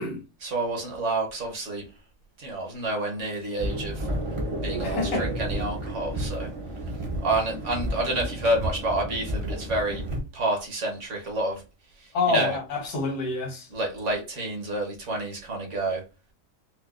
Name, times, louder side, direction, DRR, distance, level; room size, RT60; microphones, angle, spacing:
voice 1, 0.4-1.8 2.4-4.1 4.6-6.5 7.2-10.0 10.3-11.6 12.0-12.6 13.7-16.0, right 2 dB, 55° right, 1.2 m, -29 dB
sound 1, 3.6-10.2, right 1 dB, 35° right, 0.5 m, -31 dB
voice 2, 4.8-5.3 12.1-13.7, left 3 dB, 80° left, 1.5 m, -27 dB
4.5 x 2.1 x 2.4 m
omnidirectional pair, 1.6 m